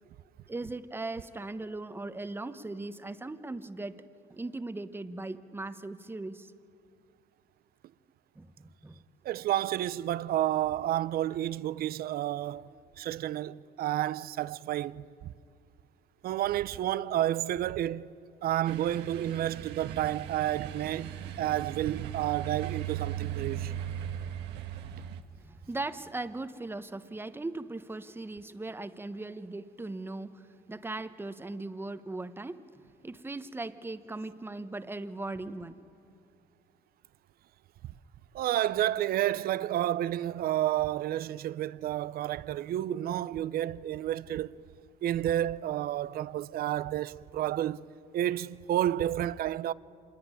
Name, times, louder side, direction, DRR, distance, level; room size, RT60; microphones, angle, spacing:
voice 1, 0.5-4.0 4.3-6.5 8.3-9.0 25.3-35.8, right 2 dB, 15° right, 1.2 m, -39 dB
voice 2, 9.2-12.7 13.0-15.0 16.2-18.1 18.4-23.7 25.0-25.1 38.3-44.6 45.0-49.7, right 12 dB, 65° right, 0.7 m, -30 dB
sound 1, 18.6-25.2, right 10 dB, 85° right, 1.5 m, -38 dB
26.5 x 21.0 x 9.8 m
cardioid pair, 110°, 17 cm